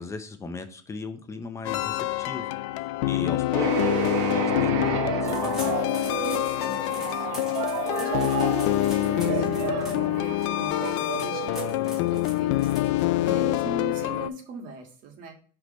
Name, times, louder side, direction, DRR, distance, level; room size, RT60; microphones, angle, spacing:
voice 1, 0.0-2.4 2.8-3.7 4.3-5.9, left 3 dB, 20° left, 8 dB, 0.7 m, -37 dB
sound 1, 1.6-14.3, left 16 dB, 75° left, 0.4 m, -26 dB
sound 2, 3.5-12.3, right 11 dB, 75° right, 0.8 m, -32 dB
sound 3, 5.2-13.3, equal, 5° right, 2.2 m, -44 dB
voice 2, 6.2-7.4 7.9-15.3, right 4 dB, 60° right, 3 dB, 1.6 m, -40 dB
5.8 x 3.3 x 5.1 m, 0.42 s
supercardioid pair, 125°, 16 cm